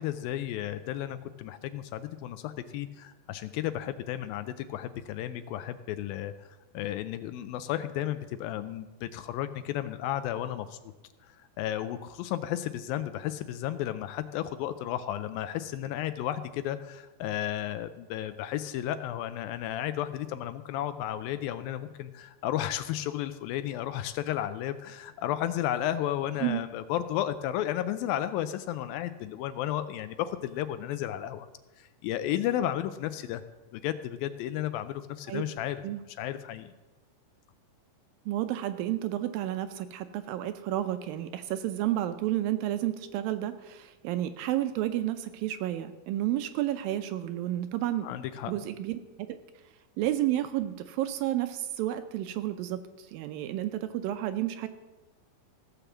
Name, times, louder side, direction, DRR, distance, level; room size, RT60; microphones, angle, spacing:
voice 1, 0.0-10.9 11.2-31.5 31.8-33.4 33.7-35.8 36.2-36.7 48.0-48.5, left 12 dB, 80° left, 12 dB, 2.2 m, -33 dB
voice 2, 38.3-48.1 48.5-49.4 50.0-54.7, right 13 dB, 80° right, 10 dB, 2.2 m, -31 dB
15.5 x 6.8 x 7.2 m, 1.2 s
omnidirectional pair, 4.4 m